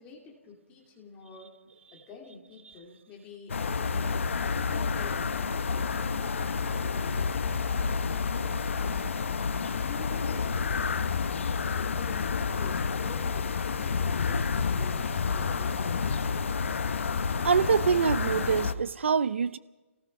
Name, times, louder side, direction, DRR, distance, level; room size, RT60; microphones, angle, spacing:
voice 1, 0.0-1.5 1.9-7.3 8.0-11.2 11.7-16.2, left 4 dB, 15° left, 2.6 m, -48 dB
sound 1, 3.5-18.7, left 5 dB, 65° left, 1.2 m, -29 dB
voice 2, 17.4-19.6, right 6 dB, 65° right, 0.7 m, -25 dB
28.5 x 18.0 x 5.5 m
hypercardioid pair, 175°, 7 cm